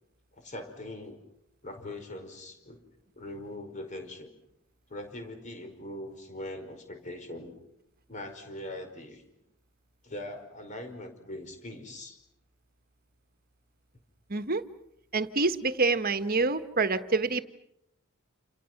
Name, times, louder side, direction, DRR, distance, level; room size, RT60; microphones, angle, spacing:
voice 1, 0.4-1.2 1.6-2.8 3.1-4.3 4.9-7.5 8.1-9.2 10.0-12.2, left 1 dB, 35° left, 6 dB, 5.1 m, -41 dB
voice 2, 14.3-14.6 15.1-17.4, right 3 dB, 45° right, 10 dB, 1.5 m, -27 dB
29.0 x 29.0 x 6.0 m, 0.77 s
head